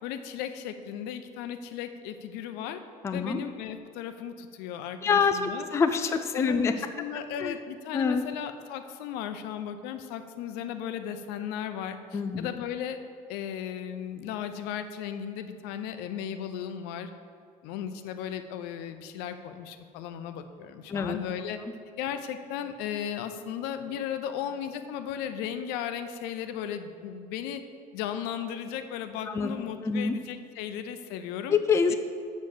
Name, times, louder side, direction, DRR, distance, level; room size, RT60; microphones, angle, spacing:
voice 1, 0.0-2.8 3.1-5.7 6.1-13.0 13.3-17.1 17.6-21.6 22.0-27.6 27.9-31.6 31.9-32.0, left 9 dB, 80° left, 9 dB, 0.6 m, -36 dB
voice 2, 3.0-3.4 5.0-6.7 7.4-7.6 7.9-8.2 12.1-12.5 20.9-21.2 29.3-29.5 29.8-30.2 31.5-31.9, left 5 dB, 15° left, 7 dB, 0.4 m, -25 dB
6.6 x 6.2 x 7.1 m, 2.2 s
cardioid pair, 150°, 16 cm